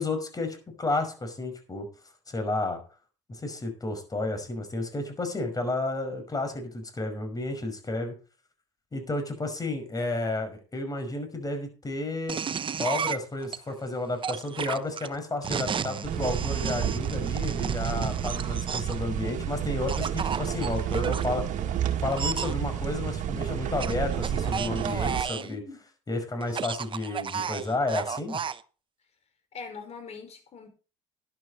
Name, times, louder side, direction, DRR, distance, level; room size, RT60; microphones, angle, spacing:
voice 1, 0.0-1.9 2.3-2.8 3.3-8.2 8.9-12.4 12.8-21.7 22.0-25.6 26.1-28.4, left 2 dB, 25° left, 7 dB, 5.4 m, -32 dB
sound 1, 12.3-13.6 14.2-19.0 19.9-21.3 22.1-22.5 23.8-25.5 26.4-28.6, right 6 dB, 35° right, 0.9 m, -32 dB
sound 2, 16.0-25.2, right 9 dB, 60° right, 2.0 m, -30 dB
voice 2, 25.3-25.8 29.5-30.7, left 5 dB, 45° left, 6 dB, 5.2 m, -42 dB
11.5 x 11.0 x 4.2 m, 0.35 s
supercardioid pair, 75°, 15 cm